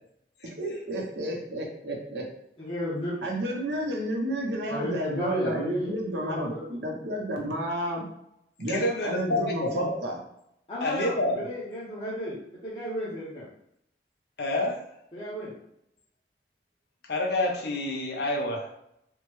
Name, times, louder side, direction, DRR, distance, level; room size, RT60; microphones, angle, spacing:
voice 1, 0.4-2.3 3.2-8.0 8.6-10.2, right 1 dB, 75° right, -1 dB, 0.8 m, -31 dB
voice 2, 2.6-3.2 4.7-6.8 10.7-12.4 12.6-13.5 15.1-15.5, equal, 30° left, -10 dB, 0.8 m, -33 dB
voice 3, 8.7-9.9 10.8-11.4 14.4-14.8 17.0-18.7, left 1 dB, 65° left, 1 dB, 0.7 m, -28 dB
3.6 x 2.1 x 3.1 m, 0.77 s
head